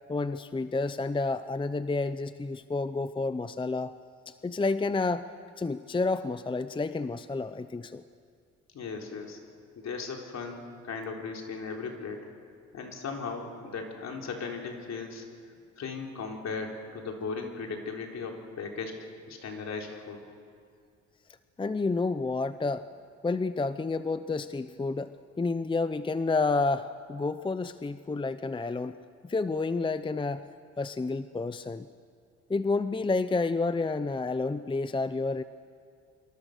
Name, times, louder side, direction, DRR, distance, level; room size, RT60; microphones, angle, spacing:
voice 1, 0.1-3.9 4.3-5.3 5.6-8.0 21.6-22.9 23.2-29.0 29.2-30.4 30.8-31.9 32.5-35.4, left 3 dB, 15° left, 12 dB, 0.6 m, -30 dB
voice 2, 8.7-9.4 9.8-12.2 12.7-15.3 15.8-18.9 19.3-20.3, left 4 dB, 60° left, 1 dB, 4.0 m, -37 dB
26.0 x 24.5 x 6.7 m, 2.3 s
cardioid pair, 90°, 30 cm